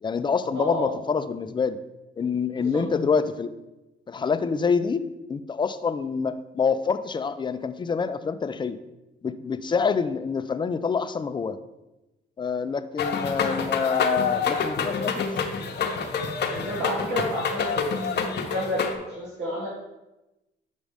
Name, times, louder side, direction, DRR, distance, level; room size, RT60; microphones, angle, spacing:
voice 1, 0.0-1.8 2.2-3.5 4.1-5.0 5.3-8.8 9.2-11.6 12.4-15.3, left 5 dB, 25° left, 11 dB, 0.4 m, -26 dB
voice 2, 0.5-0.9 2.6-2.8 16.5-17.9 18.4-19.7, equal, 80° right, -9 dB, 2.3 m, -30 dB
sound 1, 13.0-19.0, left 5 dB, 55° left, 0.8 m, -27 dB
7.2 x 5.2 x 3.4 m, 0.98 s
cardioid pair, 90°, 20 cm